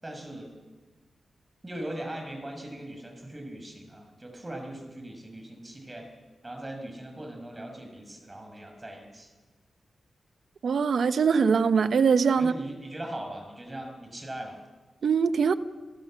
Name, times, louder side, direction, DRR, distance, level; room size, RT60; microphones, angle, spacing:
voice 1, 0.0-0.5 1.6-6.1 6.4-9.3 12.4-14.6, right 1 dB, 25° right, 6.0 m, -40 dB
voice 2, 10.6-12.5 15.0-15.5, right 6 dB, 75° right, 1.0 m, -22 dB
28.0 x 16.5 x 7.6 m
cardioid pair, 65°, 0 cm